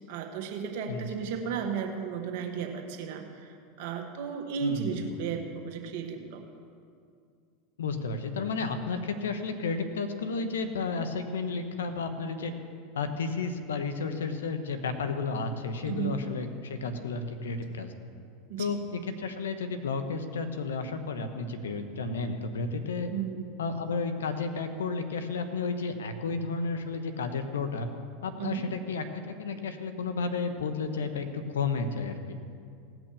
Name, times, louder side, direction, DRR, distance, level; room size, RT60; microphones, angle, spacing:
voice 1, 0.1-6.4 15.8-16.2 18.5-18.7 23.1-23.5 28.4-28.7, right 7 dB, 65° right, 3 dB, 1.6 m, -34 dB
voice 2, 4.6-5.1 7.8-12.5 12.9-17.9 18.6-23.1 23.6-27.9 28.2-32.2, left 4 dB, 80° left, 8 dB, 1.1 m, -32 dB
17.5 x 6.0 x 7.0 m, 2.3 s
hypercardioid pair, 90°, 0 cm